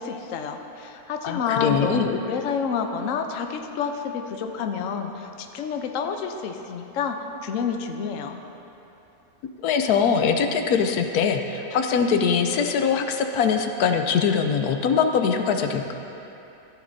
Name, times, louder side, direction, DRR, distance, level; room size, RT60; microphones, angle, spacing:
voice 1, 0.0-8.4, left 6 dB, 65° left, 5 dB, 1.0 m, -29 dB
voice 2, 1.2-2.1 9.6-15.9, left 6 dB, 90° left, 5 dB, 1.2 m, -22 dB
14.5 x 12.0 x 2.7 m, 2.9 s
omnidirectional pair, 1.6 m